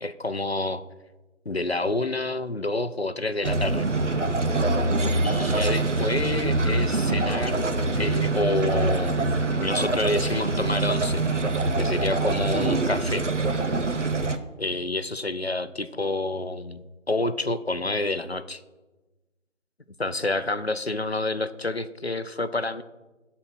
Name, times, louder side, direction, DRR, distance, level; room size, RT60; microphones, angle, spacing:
voice 1, 0.0-0.8 1.5-3.9 5.2-7.6 8.0-9.3 9.6-11.2 11.8-13.2 14.6-18.6 20.0-22.8, left 2 dB, 55° left, 12 dB, 0.6 m, -28 dB
sound 1, 3.4-14.4, right 2 dB, 65° right, 0.9 m, -24 dB
11.5 x 4.3 x 7.9 m, 1.1 s
figure-of-eight pair, 175°, 39 cm